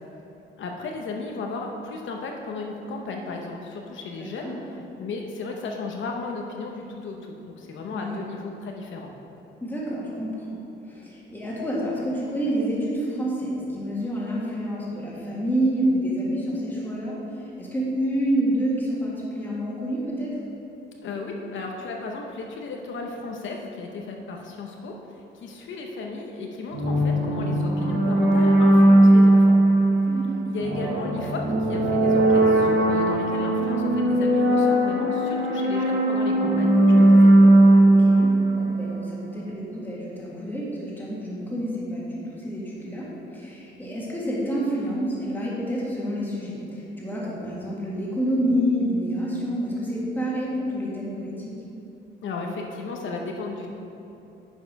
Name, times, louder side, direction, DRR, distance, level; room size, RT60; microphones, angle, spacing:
voice 1, 0.6-4.6 5.0-9.1 21.0-29.6 30.4-37.3 52.2-53.7, left 3 dB, 75° left, 1 dB, 0.9 m, -34 dB
voice 2, 4.1-4.5 7.9-8.2 9.6-10.6 10.8-20.3 30.1-30.4 37.8-51.5, equal, 10° left, -6 dB, 1.7 m, -28 dB
sound 1, 26.7-39.2, right 1 dB, 70° right, 1.8 m, -18 dB
9.8 x 5.5 x 5.3 m, 2.9 s
wide cardioid pair, 170°, 20 cm